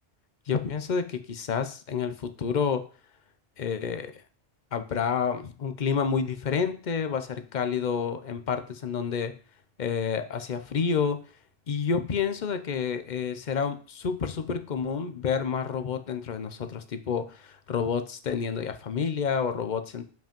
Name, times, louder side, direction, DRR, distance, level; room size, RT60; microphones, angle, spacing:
voice 1, 0.5-2.8 3.6-4.1 4.7-9.3 9.8-11.2 11.7-20.1, left 6 dB, 45° left, 9 dB, 0.7 m, -29 dB
5.8 x 5.1 x 5.2 m, 0.40 s
omnidirectional pair, 1.2 m